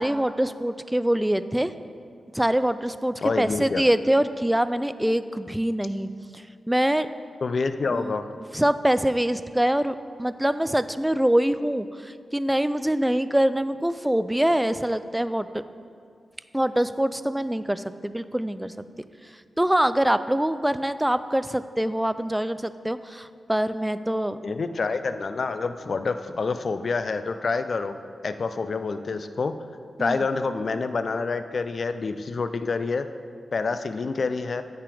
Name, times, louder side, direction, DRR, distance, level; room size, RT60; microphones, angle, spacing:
voice 1, 0.0-1.7 2.3-7.1 7.9-8.1 8.5-15.5 16.5-18.7 19.6-24.4 30.0-30.2, right 1 dB, 10° right, 13 dB, 0.3 m, -24 dB
voice 2, 3.2-3.8 7.4-8.3 24.4-28.0 28.2-29.5 30.0-33.1 33.5-34.6, left 4 dB, 60° left, 10 dB, 0.4 m, -27 dB
8.9 x 5.8 x 4.9 m, 2.3 s
cardioid pair, 70°, 0 cm